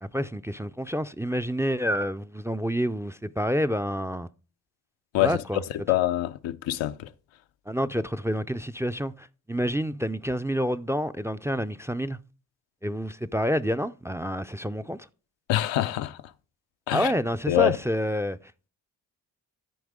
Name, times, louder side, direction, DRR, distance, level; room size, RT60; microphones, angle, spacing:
voice 1, 0.0-4.3 5.2-5.6 7.7-12.2 12.8-15.0 16.9-18.4, equal, 5° right, 0.4 m, -28 dB
voice 2, 5.1-5.6 5.9-7.1 15.5-16.2 16.9-17.1 17.5-17.8, left 14 dB, 80° left, 0.6 m, -25 dB
13.5 x 4.6 x 3.6 m
supercardioid pair, 45°, 45 cm